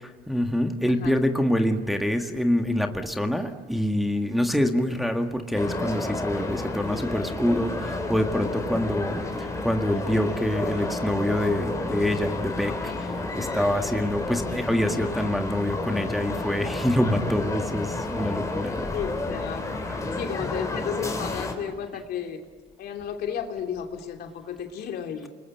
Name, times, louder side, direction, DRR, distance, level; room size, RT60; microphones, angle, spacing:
voice 1, 0.3-18.9 20.4-20.5, left 1 dB, ahead, 4 dB, 1.8 m, -26 dB
sound 1, 5.5-21.5, left 2 dB, 20° left, 4.2 m, -31 dB
voice 2, 18.9-19.7 20.1-22.4 22.8-25.3, left 8 dB, 65° left, 4 dB, 2.9 m, -33 dB
29.0 x 21.0 x 9.1 m, 1.5 s
cardioid pair, 110°, 17 cm